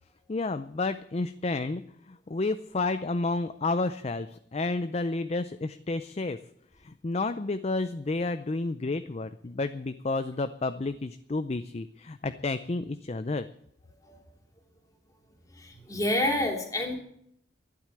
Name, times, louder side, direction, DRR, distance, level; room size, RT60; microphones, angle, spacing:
voice 1, 0.3-6.4 6.8-13.5, left 3 dB, 35° left, 11 dB, 0.5 m, -31 dB
voice 2, 15.6-17.0, left 1 dB, 20° left, 2 dB, 2.9 m, -28 dB
12.0 x 10.5 x 9.8 m, 0.74 s
head